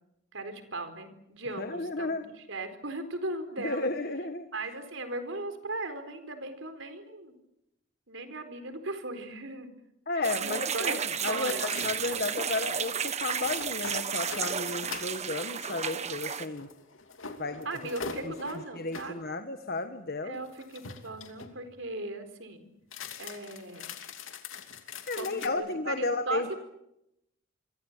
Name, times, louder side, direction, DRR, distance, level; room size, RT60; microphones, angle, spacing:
voice 1, 0.3-2.1 2.4-3.9 4.5-7.3 8.1-9.7 10.1-11.0 11.3-11.7 12.0-12.2 17.6-19.2 20.2-22.7 23.2-23.9 25.1-26.6, right 2 dB, 70° right, 9 dB, 4.3 m, -38 dB
voice 2, 1.6-2.2 3.6-4.5 10.1-16.7 17.4-17.7 18.2-18.3 18.7-20.4 25.1-26.5, left 3 dB, 50° left, 8 dB, 1.6 m, -33 dB
sound 1, 10.2-16.5, right 7 dB, 35° right, 1.5 m, -32 dB
sound 2, 11.4-12.3 13.2-15.2 16.5-19.1 20.4-21.6 22.8-25.5, left 5 dB, 75° left, 2.9 m, -43 dB
28.0 x 25.0 x 7.5 m, 0.85 s
head